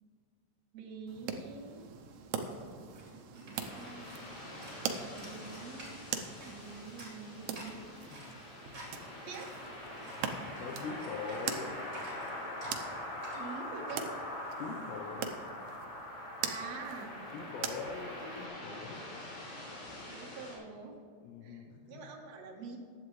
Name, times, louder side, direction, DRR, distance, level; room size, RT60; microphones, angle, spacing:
voice 1, 0.7-1.9 3.3-4.2 5.1-8.3 9.3-9.5 10.0-10.2 13.3-14.1 16.4-17.2 20.1-21.0 21.4-22.8, right 4 dB, 70° right, 1 dB, 1.6 m, -46 dB
sound 1, 1.1-18.5, right 7 dB, 85° right, 1.9 m, -43 dB
sound 2, 1.6-1.7 1.9-15.7, equal, 25° right, 3.2 m, -53 dB
sound 3, 3.5-20.6, left 1 dB, 55° left, 5.1 m, -44 dB
voice 2, 10.6-11.7 14.6-15.3 17.3-19.1 21.2-22.1, left 4 dB, 80° left, 2 dB, 3.0 m, -42 dB
15.0 x 11.0 x 3.2 m, 2.2 s
omnidirectional pair, 5.0 m